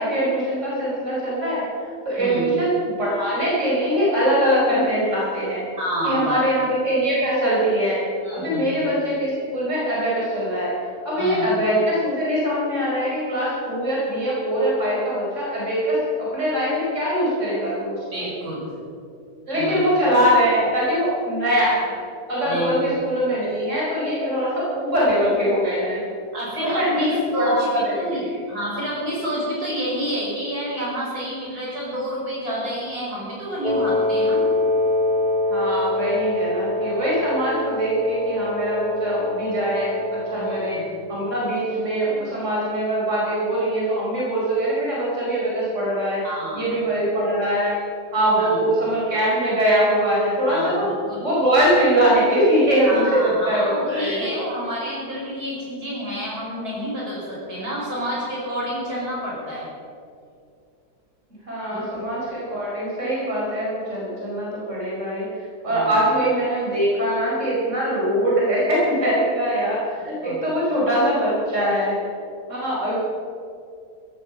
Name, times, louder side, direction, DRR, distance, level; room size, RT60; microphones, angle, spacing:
voice 1, 0.0-1.6 2.0-2.7 3.0-5.6 6.0-8.0 8.3-10.7 11.0-18.3 19.5-21.9 22.3-26.0 26.6-28.4 35.5-40.8 41.1-46.2 46.5-47.8 48.1-50.9 51.2-54.3 61.5-72.0 72.5-73.0, equal, 45° right, -7 dB, 5.3 m, -22 dB
voice 2, 2.2-2.6 5.8-6.4 8.2-8.8 11.2-11.5 18.1-18.7 19.6-19.8 22.4-22.8 26.3-27.7 27.9-28.2 28.5-34.4 40.3-41.1 46.2-46.7 48.3-48.7 50.5-50.8 51.1-51.2 52.9-59.7 61.7-61.9 65.7-65.9 70.2-70.4, equal, 70° right, -5 dB, 5.9 m, -29 dB
Wind instrument woodwind instrument, 33.6-40.9, left 1 dB, 10° left, 0.5 m, -24 dB
16.0 x 14.0 x 5.7 m, 2.4 s
omnidirectional pair, 1.7 m